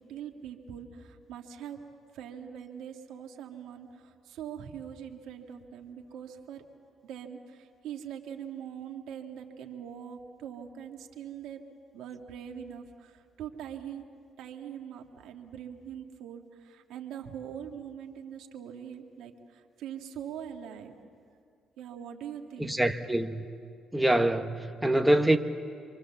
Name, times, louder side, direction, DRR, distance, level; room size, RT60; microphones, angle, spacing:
voice 1, 0.1-1.8 2.1-6.6 7.0-7.4 7.8-11.6 11.9-13.1 13.4-14.0 14.4-19.3 19.8-21.0 21.8-22.7, right 9 dB, 80° right, 1.9 m, -42 dB
voice 2, 22.6-23.4 23.9-25.4, right 1 dB, 5° right, 1.3 m, -25 dB
27.0 x 23.0 x 7.2 m
supercardioid pair, 65°, 0 cm